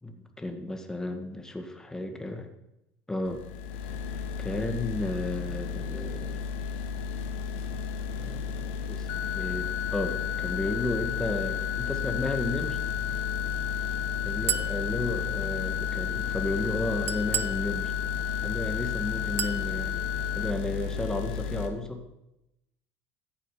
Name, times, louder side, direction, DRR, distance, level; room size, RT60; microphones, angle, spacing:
voice 1, 0.0-2.5 3.1-3.4 4.4-6.4 8.2-12.8 14.2-17.9 18.4-22.0, left 2 dB, 10° left, 5 dB, 1.8 m, -33 dB
sound 1, 3.2-21.7, left 5 dB, 85° left, 1.3 m, -34 dB
sound 2, 9.1-20.5, left 12 dB, 55° left, 0.7 m, -33 dB
Chink clink, 14.5-14.8 17.1-17.6 19.4-19.7, right 8 dB, 40° right, 0.6 m, -30 dB
14.0 x 8.8 x 5.1 m, 0.90 s
supercardioid pair, 95°, 6 cm